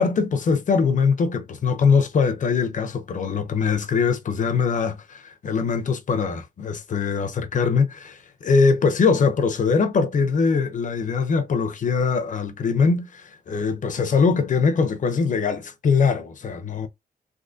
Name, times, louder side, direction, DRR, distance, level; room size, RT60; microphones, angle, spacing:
voice 1, 0.0-16.9, left 5 dB, 55° left, 0.7 m, -22 dB
3.7 x 2.8 x 2.6 m
wide cardioid pair, 130°, 16 cm